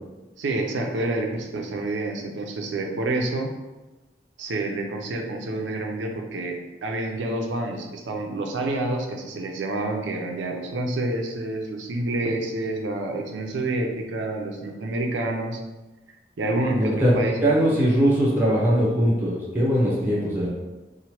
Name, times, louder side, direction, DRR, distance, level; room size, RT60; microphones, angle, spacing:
voice 1, 0.4-3.5 4.4-15.6 16.4-17.6, right 2 dB, 85° right, 3 dB, 0.4 m, -28 dB
voice 2, 16.7-17.1 17.4-20.5, equal, 10° right, -5 dB, 0.6 m, -21 dB
2.9 x 2.0 x 2.9 m, 1.1 s
head